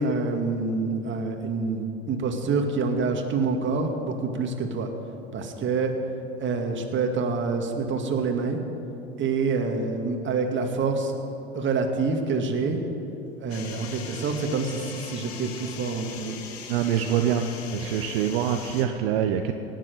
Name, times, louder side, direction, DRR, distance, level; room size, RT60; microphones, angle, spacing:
voice 1, 0.0-4.9 5.3-5.9 6.4-8.6 9.2-11.1 11.5-12.8 13.4-16.4 16.9-17.2, right 4 dB, 35° right, 4 dB, 2.2 m, -27 dB
sound 1, 13.5-18.9, left 7 dB, 75° left, 1.7 m, -40 dB
voice 2, 16.7-17.4 17.7-19.5, right 9 dB, 65° right, 5 dB, 0.9 m, -24 dB
18.0 x 7.5 x 9.3 m, 3.0 s
hypercardioid pair, 75°, 31 cm